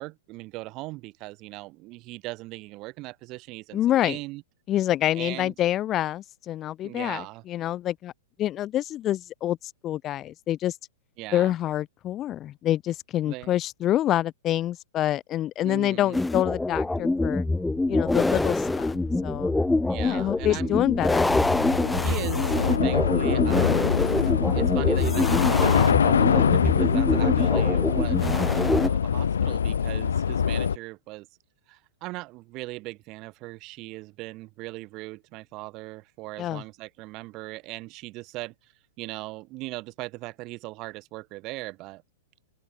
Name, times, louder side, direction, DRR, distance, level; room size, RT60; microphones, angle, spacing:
voice 1, 0.0-4.4 5.1-5.5 6.8-7.4 11.2-11.5 13.3-13.5 15.6-16.2 19.9-20.8 22.0-24.0 24.5-31.3 31.7-42.0, right 21 dB, 40° right, 2.6 m, -39 dB
voice 2, 3.7-4.2 4.7-8.1 8.4-9.6 9.8-10.8 11.3-17.4 17.9-19.5 20.0-21.3 36.4-36.6, left 13 dB, 30° left, 1.1 m, -27 dB
sound 1, 16.1-28.9, left 2 dB, 5° left, 0.3 m, -25 dB
Train / Subway metro underground, 17.4-17.5 17.8-30.8, left 7 dB, 75° left, 1.1 m, -24 dB
open air
figure-of-eight pair, 105°, 0 cm